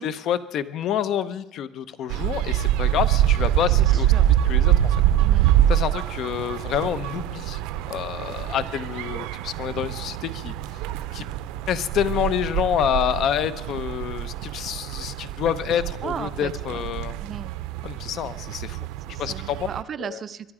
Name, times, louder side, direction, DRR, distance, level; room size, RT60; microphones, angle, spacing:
voice 1, 0.0-4.1 4.5-5.0 5.7-7.6 7.9-10.5 11.1-11.2 11.7-17.1 17.8-18.9 19.2-19.6 20.0-20.2, left 10 dB, 50° left, 15 dB, 0.7 m, -27 dB
sound 1, 2.1-19.8, right 12 dB, 90° right, 0.5 m, -25 dB
voice 2, 3.7-4.4 5.2-5.5 8.5-8.8 15.7-16.9 17.2-17.5 19.1-20.5, right 7 dB, 35° right, 14 dB, 0.5 m, -36 dB
23.5 x 11.0 x 4.9 m, 0.95 s
cardioid pair, 150°, 0 cm